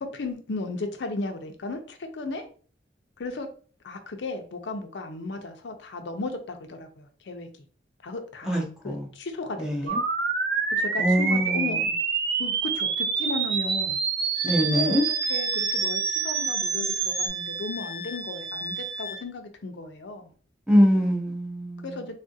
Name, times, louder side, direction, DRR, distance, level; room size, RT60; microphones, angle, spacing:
voice 1, 0.0-2.4 3.2-3.5 3.8-7.5 8.0-10.0 10.7-11.8 12.4-14.0 14.7-15.0 15.3-20.3 21.8-22.1, left 3 dB, 80° left, 0.5 m, -35 dB
voice 2, 8.5-9.1 9.5-10.0 11.0-11.8 14.4-15.1 20.7-22.0, equal, 5° right, 0.6 m, -23 dB
sound 1, 9.9-17.3, right 6 dB, 60° right, 0.4 m, -27 dB
Wind instrument woodwind instrument, 14.3-19.2, left 1 dB, 35° right, 0.9 m, -36 dB
3.5 x 2.4 x 2.6 m
head